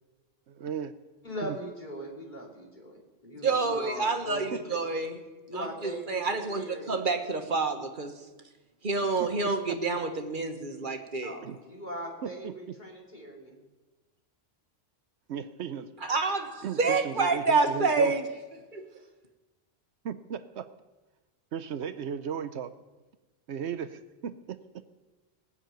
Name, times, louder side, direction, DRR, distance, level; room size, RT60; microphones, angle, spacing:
voice 1, 0.5-0.9 1.4-1.6 4.5-4.6 9.2-9.5 11.4-11.6 12.2-12.7 15.3-15.9 16.6-18.1 20.0-20.7 21.5-22.7 23.5-24.9, right 7 dB, 65° right, 12 dB, 0.9 m, -36 dB
voice 2, 1.2-4.8 5.5-7.0 11.2-13.6, equal, 35° left, -2 dB, 3.2 m, -40 dB
voice 3, 3.4-5.2 5.5-8.1 8.8-11.4 16.0-18.2 18.7-18.8, right 3 dB, 45° right, 6 dB, 1.3 m, -28 dB
19.0 x 6.7 x 9.0 m, 1.2 s
omnidirectional pair, 1.3 m